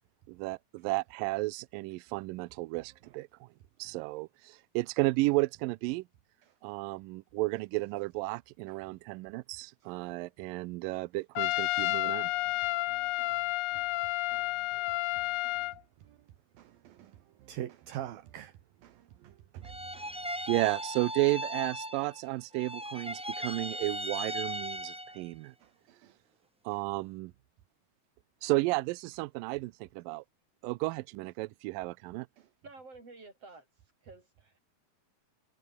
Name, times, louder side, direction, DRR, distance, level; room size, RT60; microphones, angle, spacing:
voice 1, 0.3-3.5 3.8-6.0 6.6-12.3 20.5-25.5 26.7-27.3 28.4-30.2 30.6-32.3, right 22 dB, 90° right, 2.0 m, -33 dB
Trumpet, 11.4-15.8, left 20 dB, 80° left, 2.0 m, -31 dB
voice 2, 16.6-17.1 17.4-18.5 18.8-19.7 19.9-20.1, right 12 dB, 70° right, 3.2 m, -43 dB
sound 1, 19.6-22.3 22.5-25.3, equal, 5° right, 0.5 m, -38 dB
voice 3, 32.6-33.7 34.0-34.6, right 3 dB, 35° right, 8.5 m, -51 dB
omnidirectional pair, 4.6 m